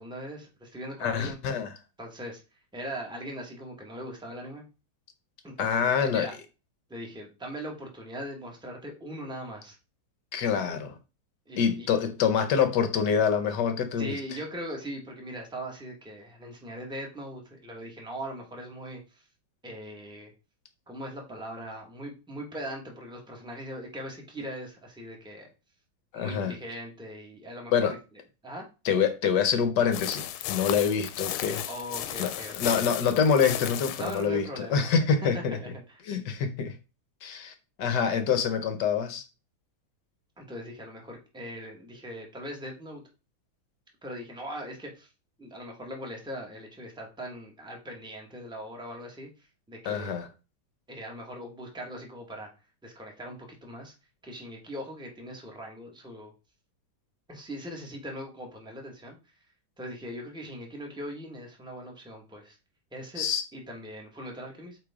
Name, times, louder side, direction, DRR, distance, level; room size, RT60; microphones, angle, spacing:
voice 1, 0.0-1.4 2.0-2.4 2.7-4.6 5.4-6.3 6.9-9.8 11.5-11.9 14.0-19.3 19.6-20.3 20.9-25.5 26.1-28.0 28.4-28.7 31.6-32.8 34.0-34.9 35.3-36.1 40.4-43.0 44.0-45.1 45.4-50.2 50.9-52.5 52.8-53.9 54.2-56.3 57.3-59.3 59.8-62.6 62.9-63.3 63.5-64.8, equal, 5° right, 1.1 m, -40 dB
voice 2, 1.0-1.7 5.6-6.3 10.3-11.0 11.6-14.2 26.1-26.5 27.7-27.9 28.8-31.7 32.2-35.6 36.1-36.7 37.2-39.2 49.9-50.3 63.2-63.4, left 7 dB, 65° left, 1.2 m, -26 dB
sound 1, 29.9-34.3, left 12 dB, 85° left, 1.4 m, -34 dB
8.3 x 3.3 x 3.6 m
omnidirectional pair, 2.3 m